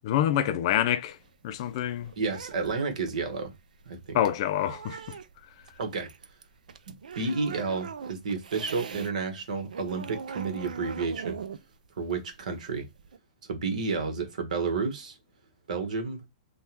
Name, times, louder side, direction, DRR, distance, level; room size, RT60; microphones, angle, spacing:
voice 1, 0.1-1.2 1.4-2.1 4.1-5.0, left 11 dB, 45° left, 0.4 m, -26 dB
sound 1, 1.0-9.1 9.4-13.2, right 6 dB, 90° right, 0.3 m, -42 dB
voice 2, 2.2-3.5 3.9-4.2 5.8-6.1 7.1-11.4 12.0-12.9 13.5-15.2 15.7-16.2, right 4 dB, 70° right, 1.2 m, -31 dB
3.4 x 2.2 x 2.8 m
hypercardioid pair, 140°, 4 cm